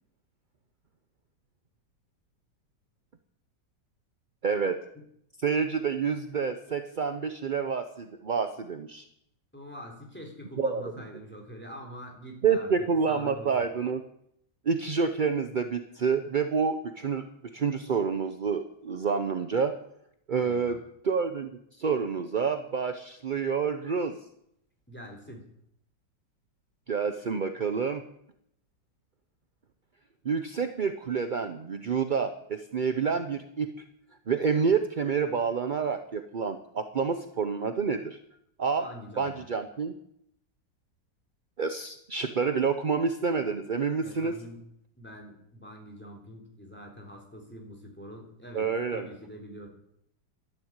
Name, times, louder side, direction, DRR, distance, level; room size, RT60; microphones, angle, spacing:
voice 1, 4.4-4.8 5.4-9.0 10.6-10.8 12.4-14.0 14.7-17.2 17.5-19.8 20.3-20.8 21.0-21.5 21.8-24.2 26.9-28.0 30.2-33.7 34.3-38.2 38.6-38.8 39.2-39.9 41.6-44.3 48.5-49.1, right 5 dB, 45° right, 8 dB, 0.6 m, -28 dB
voice 2, 9.5-13.6 20.3-20.8 24.9-25.5 38.8-39.4 44.0-44.6 45.0-49.7, equal, 5° left, 2 dB, 3.6 m, -45 dB
13.0 x 11.0 x 8.9 m, 0.74 s
omnidirectional pair, 1.9 m